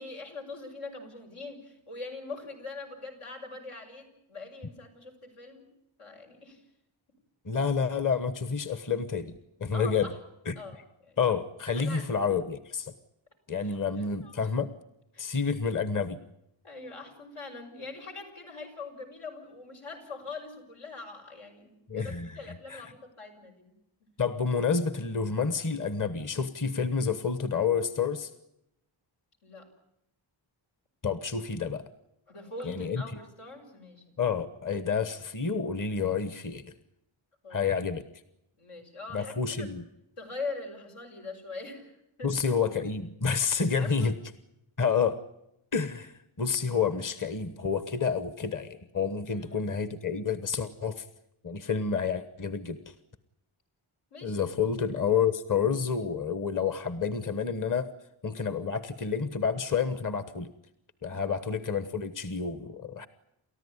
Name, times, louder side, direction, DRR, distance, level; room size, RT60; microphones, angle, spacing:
voice 1, 0.0-5.6 6.0-6.6 9.7-10.2 10.6-11.2 11.7-12.0 13.6-14.3 15.1-15.2 16.6-23.8 29.4-29.7 32.3-34.2 34.8-34.9 37.4-37.6 38.6-39.7 40.2-41.9 42.2-42.3 43.8-44.1 49.3-49.7 54.1-54.5 61.0-61.3, left 3 dB, 85° left, 2 dB, 6.5 m, -42 dB
voice 2, 7.4-10.1 10.5-10.6 11.2-12.9 13.5-14.7 15.2-16.2 21.9-22.8 24.2-28.3 31.0-31.8 32.6-33.0 34.2-36.6 37.5-38.0 39.1-39.8 42.2-44.1 44.8-45.2 45.7-51.0 51.4-52.9 54.2-57.9 58.2-60.5 61.0-63.1, left 6 dB, 40° left, 13 dB, 1.2 m, -29 dB
30.0 x 14.0 x 9.8 m, 0.84 s
wide cardioid pair, 110°, 49 cm